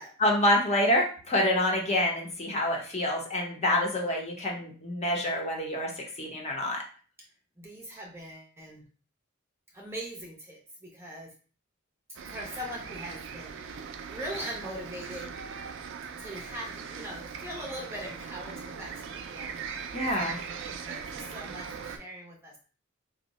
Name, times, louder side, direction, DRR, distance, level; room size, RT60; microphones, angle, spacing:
voice 1, 0.2-5.9 6.2-6.8 19.9-20.4, left 1 dB, 30° left, 0 dB, 0.8 m, -27 dB
voice 2, 7.6-8.8 9.7-11.3 12.2-15.3 16.2-19.6 20.0-22.6, equal, 10° right, -2 dB, 0.6 m, -41 dB
sound 1, 12.1-22.0, right 6 dB, 65° right, 0.4 m, -40 dB
2.7 x 2.1 x 4.0 m, 0.39 s
head